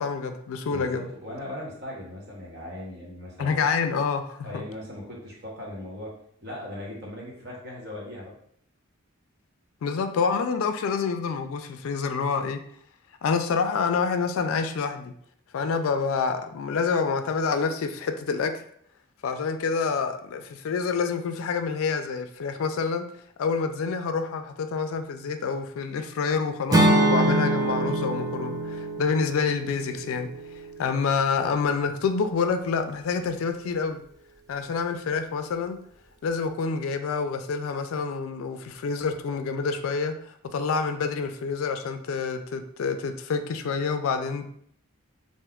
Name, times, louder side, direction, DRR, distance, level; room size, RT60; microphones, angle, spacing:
voice 1, 0.0-1.1 3.4-4.6 9.8-12.6 13.2-15.1 15.5-18.5 19.2-23.1 23.4-30.3 30.8-34.0 34.5-35.8 36.2-44.5, left 5 dB, 80° left, 7 dB, 0.3 m, -27 dB
voice 2, 0.7-3.5 4.4-6.1 6.4-8.4, left 1 dB, 50° right, -3 dB, 0.9 m, -38 dB
Acoustic guitar / Strum, 26.7-30.8, right 2 dB, 15° right, 0.3 m, -24 dB
3.5 x 2.5 x 2.2 m, 0.64 s
head